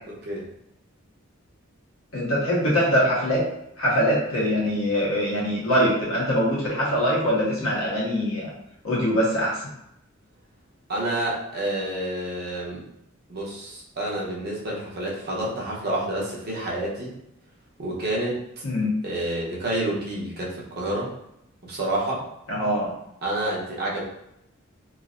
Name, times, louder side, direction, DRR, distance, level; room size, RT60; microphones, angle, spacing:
voice 1, 0.1-0.5 10.9-12.8 13.3-17.1 17.8-18.6 19.0-21.1 21.6-22.3 23.2-24.0, right 1 dB, 50° right, -4 dB, 0.9 m, -29 dB
voice 2, 2.1-3.4 3.8-8.5 8.8-9.6 18.6-18.9 22.5-22.9, equal, 85° left, -5 dB, 1.2 m, -23 dB
3.1 x 2.7 x 2.5 m, 0.79 s
head